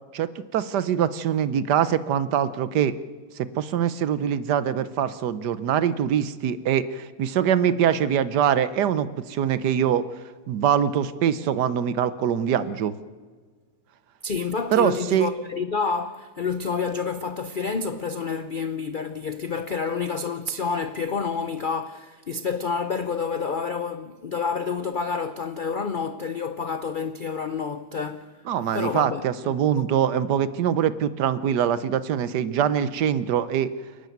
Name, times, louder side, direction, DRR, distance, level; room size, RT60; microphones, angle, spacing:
voice 1, 0.1-2.9 3.4-10.0 10.5-13.0 14.7-15.3 28.5-33.7, right 9 dB, 70° right, 1.4 m, -23 dB
voice 2, 14.2-28.3 28.7-29.8, left 5 dB, 85° left, 0.4 m, -29 dB
28.5 x 12.0 x 9.3 m
omnidirectional pair, 1.9 m